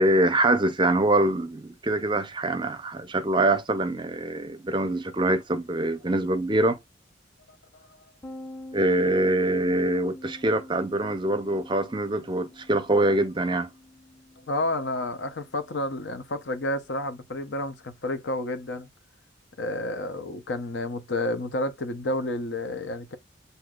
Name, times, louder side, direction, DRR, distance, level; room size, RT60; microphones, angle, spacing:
voice 1, 0.0-6.8 8.7-13.7, right 1 dB, 25° right, 0.6 m, -24 dB
sound 1, 8.2-17.7, left 1 dB, 10° left, 0.9 m, -47 dB
voice 2, 14.5-18.9 19.6-23.2, left 1 dB, 70° left, 0.8 m, -30 dB
7.8 x 2.7 x 2.4 m
head